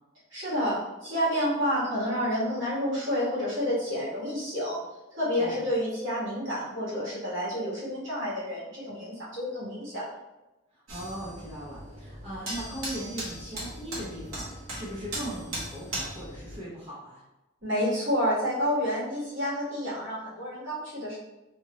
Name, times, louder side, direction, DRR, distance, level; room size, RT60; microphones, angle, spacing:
voice 1, 0.3-4.8 5.1-10.1 17.6-21.2, equal, 65° right, -9 dB, 1.5 m, -29 dB
voice 2, 10.9-17.2, right 1 dB, 30° right, -10 dB, 0.7 m, -39 dB
sound 1, 10.9-16.6, right 1 dB, 90° right, 1.0 m, -38 dB
2.7 x 2.5 x 3.0 m, 1.0 s
head